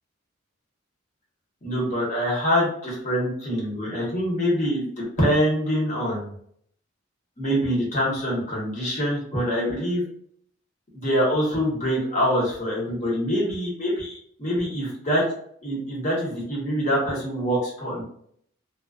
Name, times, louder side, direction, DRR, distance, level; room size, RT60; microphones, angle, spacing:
voice 1, 1.6-4.9 5.2-6.3 7.4-10.0 10.9-15.2 15.6-18.0, equal, 40° left, -4 dB, 1.0 m, -25 dB
2.3 x 2.2 x 2.3 m, 0.64 s
head